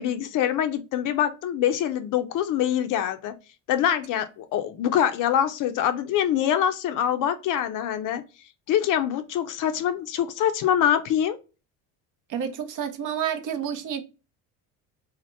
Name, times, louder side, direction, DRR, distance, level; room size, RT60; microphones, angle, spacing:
voice 1, 0.0-3.3 3.7-8.2 8.7-11.4, left 10 dB, 55° left, 0.5 m, -24 dB
voice 2, 12.3-14.0, right 8 dB, 50° right, 0.6 m, -29 dB
2.8 x 2.0 x 3.1 m
supercardioid pair, 100°, 39 cm